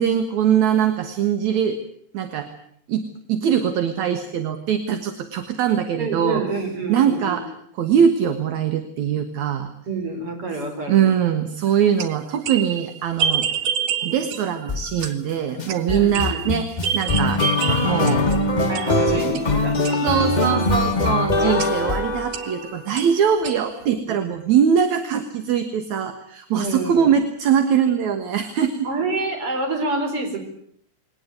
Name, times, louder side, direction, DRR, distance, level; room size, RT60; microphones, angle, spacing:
voice 1, 0.0-1.8 2.1-2.5 2.9-6.4 6.9-7.4 7.8-9.7 10.9-13.5 14.0-17.4 17.8-18.3 18.9-19.4 20.0-28.9, right 8 dB, 70° right, 8 dB, 2.8 m, -22 dB
voice 2, 6.0-7.4 9.9-11.1 15.9-16.5 18.7-20.2 24.0-24.2 26.6-27.1 28.8-30.4, right 3 dB, 45° right, 4 dB, 5.5 m, -27 dB
sound 1, 11.7-18.4 18.7-20.4 21.6-22.0 22.3-24.0, right 8 dB, 90° right, 3.0 m, -29 dB
sound 2, 14.7-15.1 15.6-22.8, left 2 dB, 55° left, 0.4 m, -22 dB
21.5 x 19.0 x 9.4 m, 0.67 s
omnidirectional pair, 3.4 m